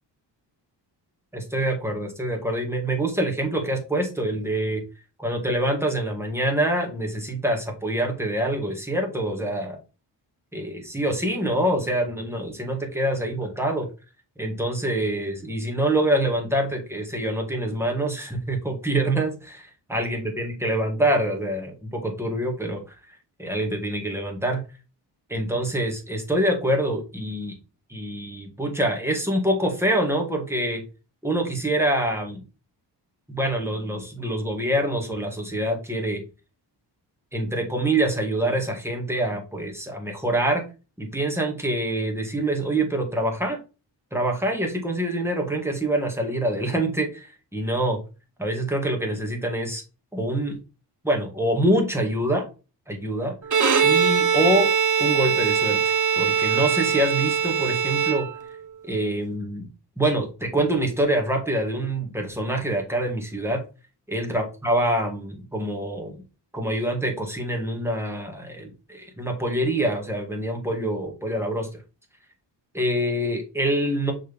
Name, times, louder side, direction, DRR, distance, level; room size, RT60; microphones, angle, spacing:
voice 1, 1.3-4.8 5.2-9.8 10.5-13.9 14.4-22.9 23.4-24.6 25.3-27.6 27.9-30.8 31.2-32.4 33.3-36.2 37.3-40.6 41.0-43.6 44.1-48.0 48.4-49.8 50.1-50.6 51.0-52.5 52.9-53.3 53.8-54.7 55.0-58.3 58.8-59.7 60.0-63.6 64.1-66.2 66.5-71.7 72.7-74.1, right 1 dB, 5° right, 2 dB, 2.1 m, -25 dB
Bowed string instrument, 53.4-58.7, right 7 dB, 45° right, 1.0 m, -22 dB
6.1 x 4.5 x 3.6 m, 0.31 s
cardioid pair, 110°, 44 cm